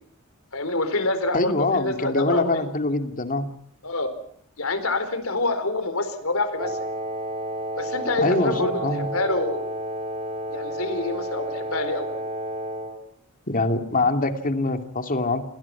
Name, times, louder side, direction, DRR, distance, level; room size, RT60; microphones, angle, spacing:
voice 1, 0.5-2.7 3.8-4.1 4.6-6.8 7.8-9.7 10.5-12.2, left 2 dB, 75° left, 10 dB, 4.3 m, -27 dB
voice 2, 1.3-3.5 8.2-9.1 13.5-15.4, left 2 dB, 40° left, 7 dB, 2.6 m, -24 dB
Wind instrument woodwind instrument, 6.6-13.0, right 1 dB, 35° right, 2.9 m, -31 dB
29.5 x 21.0 x 6.0 m, 0.65 s
head